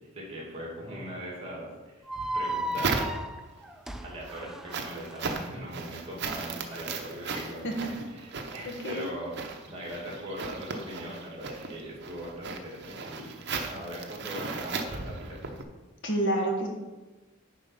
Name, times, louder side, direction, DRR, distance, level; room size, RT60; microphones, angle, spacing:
voice 1, 0.1-2.1 2.3-3.1 4.0-15.6, equal, 30° right, -4 dB, 2.5 m, -40 dB
sound 1, 2.1-5.3, right 1 dB, ahead, 0.3 m, -35 dB
sound 2, 2.1-3.6 4.0-15.6, right 4 dB, 55° right, 0.8 m, -36 dB
voice 2, 7.3-7.9 8.6-9.1 16.0-16.7, right 1 dB, 60° left, 1 dB, 1.4 m, -29 dB
9.8 x 4.1 x 5.4 m, 1.2 s
head